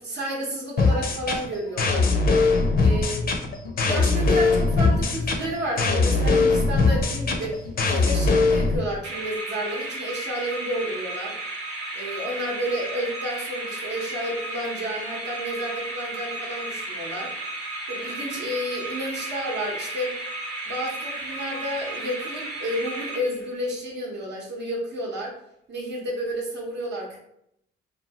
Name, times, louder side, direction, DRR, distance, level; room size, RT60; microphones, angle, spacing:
voice 1, 0.0-2.1 2.8-3.4 3.7-11.4 11.9-17.3 17.9-20.1 20.7-25.4 25.7-27.2, equal, 60° right, -3 dB, 0.8 m, -31 dB
sound 1, 0.8-8.8, left 3 dB, 50° left, 0.5 m, -21 dB
sound 2, 9.0-23.7, right 2 dB, 85° right, 1.1 m, -34 dB
2.7 x 2.3 x 2.8 m, 0.76 s
cardioid pair, 90°, 20 cm